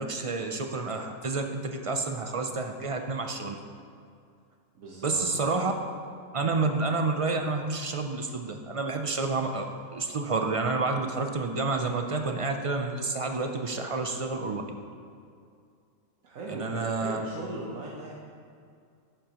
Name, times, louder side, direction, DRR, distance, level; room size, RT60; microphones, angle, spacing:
voice 1, 0.0-3.5 5.0-5.7 6.3-14.6 16.5-17.3, right 3 dB, 50° right, 4 dB, 0.4 m, -29 dB
voice 2, 4.7-5.4 6.4-6.5 16.2-18.1, right 2 dB, 85° right, -4 dB, 1.4 m, -39 dB
11.5 x 8.8 x 3.0 m, 2.4 s
omnidirectional pair, 1.4 m